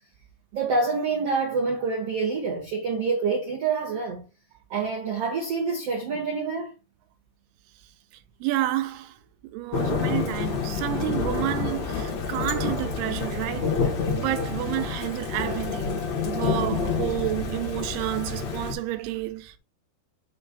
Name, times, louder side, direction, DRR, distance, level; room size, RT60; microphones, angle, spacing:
voice 1, 0.5-4.2 4.7-6.7, right 4 dB, 70° right, 1.5 m, -27 dB
voice 2, 8.4-9.2 9.5-13.8 14.1-15.9 16.2-19.6, right 15 dB, 85° right, 2.4 m, -30 dB
Thunder / Rain, 9.7-18.7, left 5 dB, 55° left, 2.2 m, -28 dB
6.8 x 2.9 x 5.7 m
omnidirectional pair, 5.0 m